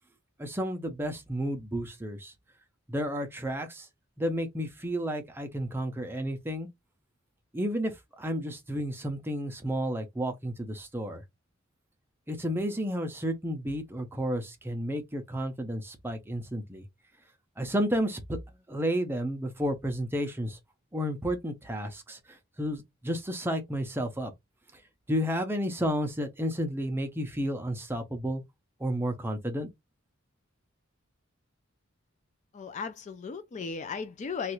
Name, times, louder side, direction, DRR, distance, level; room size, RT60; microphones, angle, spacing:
voice 1, 0.4-2.3 2.9-3.9 4.2-6.7 7.5-7.9 8.2-11.2 12.3-16.8 17.6-18.4 18.7-20.6 20.9-24.3 25.1-28.4 28.8-29.7, equal, 10° right, 0.6 m, -31 dB
voice 2, 32.5-34.5, left 5 dB, 35° left, 0.3 m, -36 dB
3.2 x 2.4 x 3.0 m
head